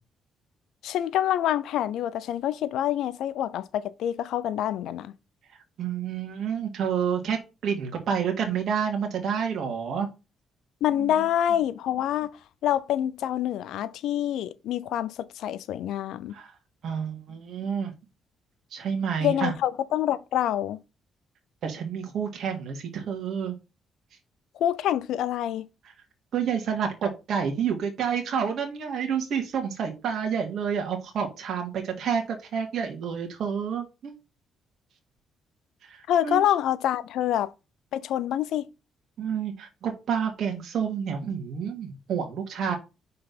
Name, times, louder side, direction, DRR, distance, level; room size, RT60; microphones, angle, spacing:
voice 1, 0.8-5.1 10.8-12.3 12.6-16.3 19.2-20.8 24.6-25.6 36.1-37.5 37.9-38.7, left 11 dB, 80° left, 0.5 m, -26 dB
voice 2, 5.8-10.1 11.0-11.3 16.3-16.5 16.8-17.9 18.7-19.5 21.6-23.6 26.3-34.1 35.9-36.4 39.2-42.7, right 7 dB, 65° right, 2.0 m, -29 dB
5.6 x 3.8 x 5.9 m
cardioid pair, 90°, 0 cm